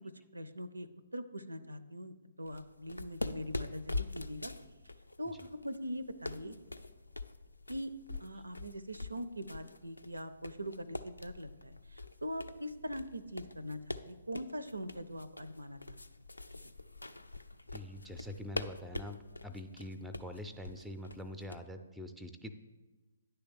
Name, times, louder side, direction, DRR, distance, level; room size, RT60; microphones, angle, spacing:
voice 1, 0.3-4.5 5.2-6.6 7.7-7.9 8.2-16.0 16.6-16.7, equal, 80° right, 14 dB, 0.5 m, -42 dB
sound 1, 2.5-21.6, left 2 dB, 80° left, 0.4 m, -44 dB
voice 2, 17.7-22.5, left 1 dB, ahead, 8 dB, 0.4 m, -45 dB
9.9 x 3.4 x 7.1 m, 1.2 s
figure-of-eight pair, 130°, 0 cm